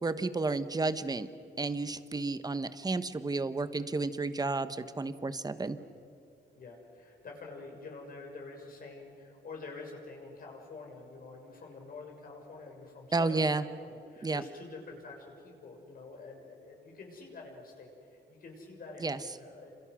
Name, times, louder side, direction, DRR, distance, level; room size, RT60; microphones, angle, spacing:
voice 1, 0.0-1.3 1.6-5.8 13.1-13.6 14.2-14.4 19.0-19.2, right 3 dB, 20° right, 12 dB, 1.1 m, -31 dB
voice 2, 6.5-19.7, left 3 dB, 50° left, 1 dB, 6.5 m, -47 dB
29.0 x 27.5 x 6.3 m, 2.6 s
cardioid pair, 125°, 18 cm